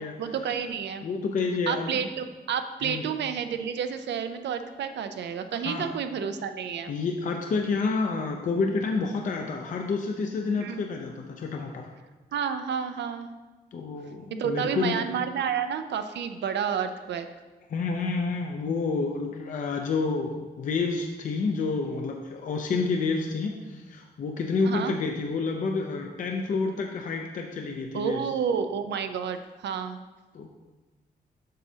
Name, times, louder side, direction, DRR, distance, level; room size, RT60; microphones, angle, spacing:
voice 1, 0.2-1.1 1.7-6.9 10.6-10.8 12.3-13.3 14.4-17.3 24.7-24.9 27.9-30.0, right 7 dB, 90° right, 8 dB, 0.5 m, -30 dB
voice 2, 1.0-2.1 2.8-3.0 5.6-5.9 6.9-11.9 13.7-15.0 17.7-28.3 30.3-30.5, left 4 dB, 50° left, 2 dB, 0.5 m, -29 dB
7.5 x 6.2 x 2.7 m, 1.2 s
wide cardioid pair, 170°, 18 cm